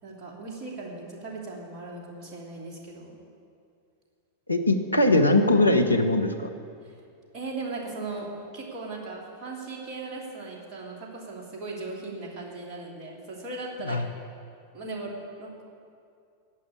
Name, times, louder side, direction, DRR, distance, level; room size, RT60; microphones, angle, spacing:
voice 1, 0.0-3.2 6.8-7.0 7.3-8.3 8.5-14.0 14.7-15.6, right 3 dB, 35° right, -3 dB, 3.0 m, -38 dB
voice 2, 4.5-6.5 13.8-14.0, left 1 dB, 85° left, 6 dB, 0.9 m, -21 dB
11.5 x 8.1 x 9.6 m, 2.4 s
figure-of-eight pair, 90°, 0 cm